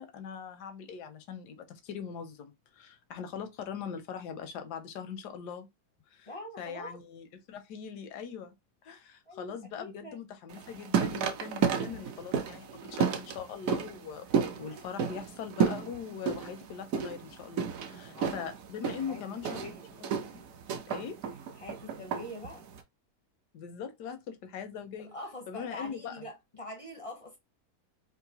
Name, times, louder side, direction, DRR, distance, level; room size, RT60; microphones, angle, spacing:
voice 1, 0.0-5.7 6.1-6.3 6.6-8.5 8.8-14.2 14.6-19.7 20.0-20.4 20.9-21.2 23.5-25.1 25.5-26.1, left 7 dB, 80° left, 1.3 m, -41 dB
voice 2, 6.3-7.0 9.2-10.2 17.9-18.5 18.9-19.9 21.6-22.6 25.0-27.4, left 1 dB, 35° left, 0.5 m, -44 dB
sound 1, 10.5-22.8, right 7 dB, 65° right, 0.9 m, -32 dB
3.8 x 2.5 x 2.7 m
omnidirectional pair, 1.8 m